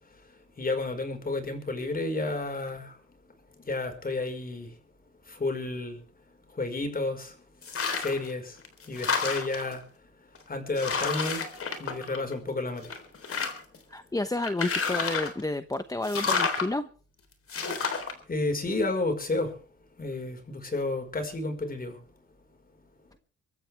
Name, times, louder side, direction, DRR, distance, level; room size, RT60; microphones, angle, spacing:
voice 1, 0.6-3.0 3.6-4.7 5.3-6.0 6.5-7.4 8.0-9.8 10.5-11.4 11.8-13.0 17.9-19.5 20.0-22.0, left 2 dB, 30° left, 5.0 m, -31 dB
sound 1, 7.6-8.3 8.6-9.7 10.3-10.4 10.8-12.5 12.8-13.8 14.4-15.4 16.0-16.7 17.5-18.1, left 5 dB, 45° left, 3.9 m, -30 dB
voice 2, 13.9-16.9, left 2 dB, 10° left, 1.0 m, -30 dB
24.5 x 13.5 x 3.5 m
cardioid pair, 90°, 30 cm